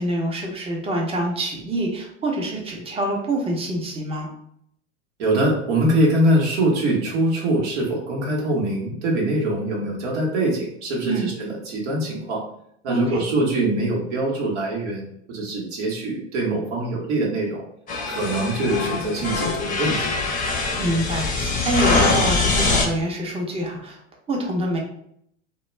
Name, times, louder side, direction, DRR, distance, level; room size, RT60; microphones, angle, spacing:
voice 1, 0.0-4.3 11.0-11.3 12.9-13.2 20.8-24.0 24.3-24.8, right 1 dB, 15° right, 0 dB, 0.7 m, -26 dB
voice 2, 5.2-12.4 12.8-17.6 18.1-20.1, right 1 dB, 70° right, -2 dB, 1.0 m, -23 dB
sound 1, 17.9-22.9, left 3 dB, 25° left, 0.6 m, -23 dB
2.2 x 2.1 x 3.1 m, 0.70 s
hypercardioid pair, 95°, 36 cm